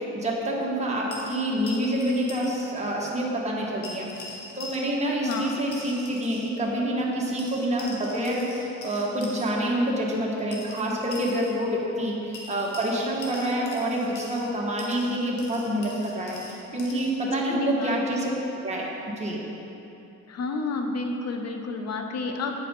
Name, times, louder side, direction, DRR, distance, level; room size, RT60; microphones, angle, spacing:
voice 1, 0.1-18.3 18.6-18.9 19.2-19.4, right 1 dB, 20° right, -4 dB, 1.7 m, -27 dB
sound 1, 1.1-2.6 2.8-2.9 3.8-5.1 5.3-6.5 7.4-9.5 10.5-11.6 12.3-14.5 14.8-17.1, left 2 dB, 75° left, 1.4 m, -42 dB
voice 2, 5.2-5.6 17.5-18.0 20.3-22.5, left 3 dB, 55° left, 4 dB, 0.9 m, -30 dB
8.6 x 4.9 x 5.4 m, 2.9 s
cardioid pair, 90°, 30 cm